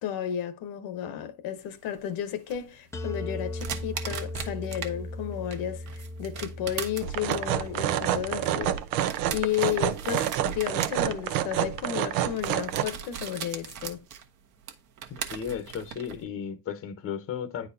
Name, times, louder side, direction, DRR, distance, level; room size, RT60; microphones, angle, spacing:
voice 1, 0.0-8.8 9.3-14.0, left 10 dB, 50° left, 1.1 m, -33 dB
sound 1, 1.6-4.9 5.3-16.3, right 8 dB, 40° right, 1.2 m, -40 dB
sound 2, 2.9-8.7, left 1 dB, 5° left, 0.5 m, -38 dB
sound 3, 7.0-12.8, right 11 dB, 70° right, 0.9 m, -28 dB
voice 2, 15.1-17.7, left 7 dB, 30° left, 1.0 m, -35 dB
9.4 x 4.2 x 2.7 m
supercardioid pair, 135°, 47 cm